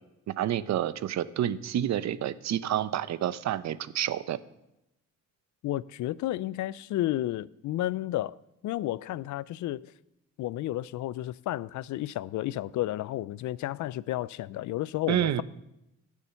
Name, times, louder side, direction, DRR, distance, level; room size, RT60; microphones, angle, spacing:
voice 1, 0.3-4.4 15.1-15.4, right 11 dB, 65° right, 0.7 m, -29 dB
voice 2, 5.6-8.4 8.6-9.9 10.4-15.4, left 14 dB, 75° left, 0.5 m, -32 dB
17.5 x 7.2 x 5.7 m
cardioid pair, 90°, 30 cm